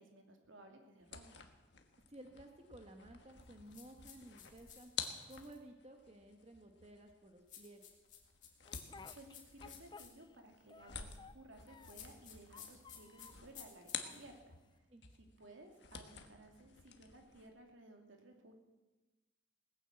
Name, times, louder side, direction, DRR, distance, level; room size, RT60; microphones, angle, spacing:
voice 1, 0.0-1.5 9.1-14.9 15.2-18.5, right 1 dB, 75° right, 3 dB, 2.6 m, -58 dB
sound 1, 1.0-14.7 15.0-17.5, left 7 dB, 60° left, 1.5 m, -51 dB
voice 2, 2.1-4.9 5.3-7.8 14.9-15.0, right 1 dB, 30° right, 4 dB, 1.3 m, -55 dB
sound 2, 3.7-5.6 7.5-10.1 11.8-14.2, left 9 dB, 40° left, 2.6 m, -55 dB
Speech, 8.7-10.4 10.7-12.1 12.5-13.5 14.0-14.8, left 4 dB, 20° left, 0.5 m, -57 dB
18.0 x 10.0 x 7.6 m, 1.1 s
head